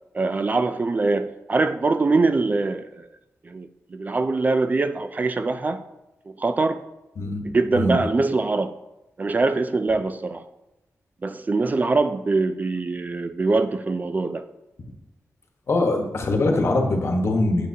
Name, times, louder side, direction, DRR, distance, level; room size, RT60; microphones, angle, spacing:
voice 1, 0.1-3.0 3.5-5.8 6.3-6.8 7.5-8.7 9.2-10.4 11.2-14.4, right 3 dB, 30° right, 10 dB, 0.3 m, -23 dB
voice 2, 15.7-17.7, left 2 dB, 55° left, 3 dB, 1.2 m, -22 dB
8.4 x 8.3 x 2.7 m, 0.96 s
wide cardioid pair, 150°, 5 cm